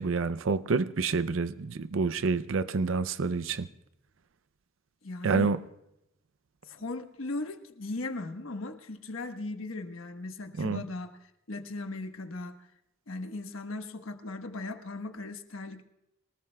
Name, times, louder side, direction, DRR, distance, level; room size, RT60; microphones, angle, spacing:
voice 1, 0.0-3.7 5.2-5.6 10.6-10.8, right 4 dB, 75° right, 0.5 m, -28 dB
voice 2, 5.0-5.5 6.7-12.7 13.1-15.8, left 2 dB, 85° left, 1.3 m, -38 dB
25.0 x 19.5 x 2.3 m
head